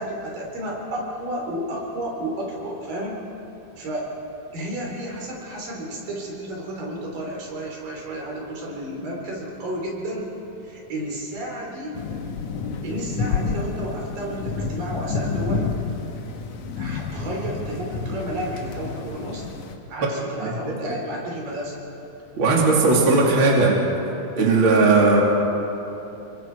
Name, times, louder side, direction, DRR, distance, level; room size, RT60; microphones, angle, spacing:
voice 1, 0.0-3.2 3.8-4.1 4.5-10.3 10.6-12.0 12.8-15.7 16.8-19.5 19.9-21.8, right 1 dB, 80° right, -1 dB, 5.4 m, -32 dB
sound 1, 11.9-19.8, left 4 dB, 60° left, 2.3 m, -29 dB
voice 2, 22.4-23.8 24.3-25.2, right 3 dB, 40° right, -2 dB, 3.3 m, -17 dB
28.0 x 23.0 x 4.7 m, 3.0 s
omnidirectional pair, 3.9 m